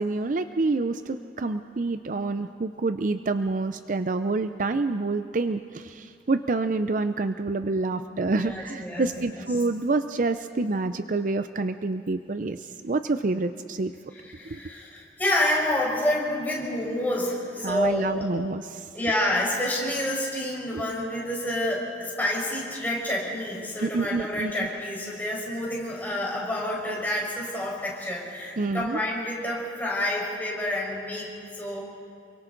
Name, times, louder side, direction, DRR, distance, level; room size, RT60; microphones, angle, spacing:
voice 1, 0.0-13.9 14.4-14.6 17.6-18.9 20.7-20.8 23.8-24.7 28.6-29.0, right 3 dB, 50° right, 10 dB, 0.5 m, -27 dB
voice 2, 8.3-9.1 14.2-18.3 18.9-31.3 31.5-31.8, left 1 dB, 10° left, -4 dB, 5.0 m, -28 dB
28.5 x 23.5 x 3.9 m, 2.5 s
head